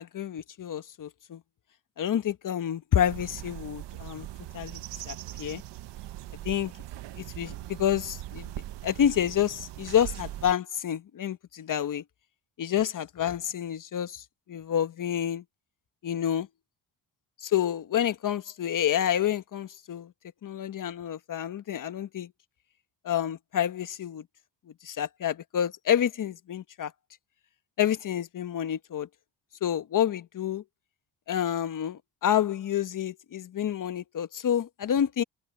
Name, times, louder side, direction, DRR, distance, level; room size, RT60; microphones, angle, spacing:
voice 1, 0.0-1.4 2.0-4.3 4.5-5.6 6.4-6.7 7.1-8.5 8.8-12.0 12.6-15.4 16.0-16.5 17.4-20.1 20.4-22.3 23.0-24.2 24.8-26.9 27.8-29.1 29.6-30.6 31.3-35.2, left 10 dB, 45° left, 1.2 m, -28 dB
sound 1, 2.9-10.5, right 14 dB, 75° right, 1.2 m, -41 dB
open air
cardioid pair, 95°, 44 cm